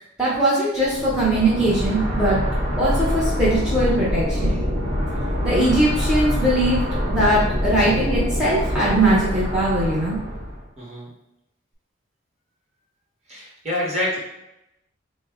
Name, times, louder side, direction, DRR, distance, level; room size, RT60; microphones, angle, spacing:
voice 1, 0.2-2.4 2.8-4.6 5.4-6.8 7.1-10.2, right 1 dB, 5° right, -9 dB, 0.6 m, -20 dB
sound 1, 0.8-10.7, equal, 60° right, 1.0 m, -25 dB
voice 2, 4.3-4.7 5.1-5.2 10.8-11.1 13.3-14.2, left 1 dB, 30° right, -4 dB, 0.9 m, -28 dB
4.0 x 2.1 x 3.5 m, 0.88 s
head